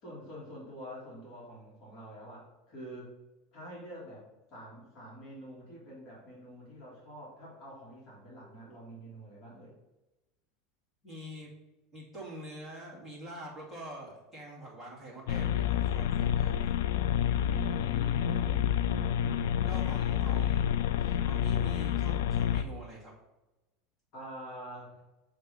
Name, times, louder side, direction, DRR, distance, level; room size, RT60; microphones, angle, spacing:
voice 1, 0.0-3.2 3.5-9.7 17.4-19.8 24.1-25.0, equal, 45° left, -5 dB, 2.4 m, -46 dB
voice 2, 11.0-11.5 11.9-16.7 19.6-23.1, right 1 dB, 10° left, -5 dB, 2.3 m, -45 dB
sound 1, 15.3-22.6, left 9 dB, 80° left, 0.3 m, -28 dB
6.7 x 3.4 x 5.3 m, 1.0 s
supercardioid pair, 165°, 0 cm